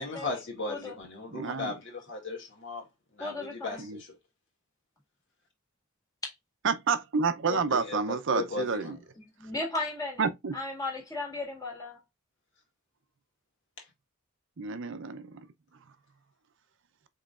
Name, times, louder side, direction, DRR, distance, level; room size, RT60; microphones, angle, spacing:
voice 1, 0.0-2.8 3.1-4.1 7.5-9.0, left 3 dB, 60° left, 2.1 m, -37 dB
voice 2, 1.3-1.7 3.8-4.0 6.6-9.0 10.2-10.6 14.6-15.4, right 5 dB, 60° right, 0.6 m, -29 dB
voice 3, 3.2-3.8 6.2-6.3 9.4-10.2 10.5-12.0, left 2 dB, 15° left, 1.9 m, -35 dB
5.2 x 3.8 x 2.4 m
head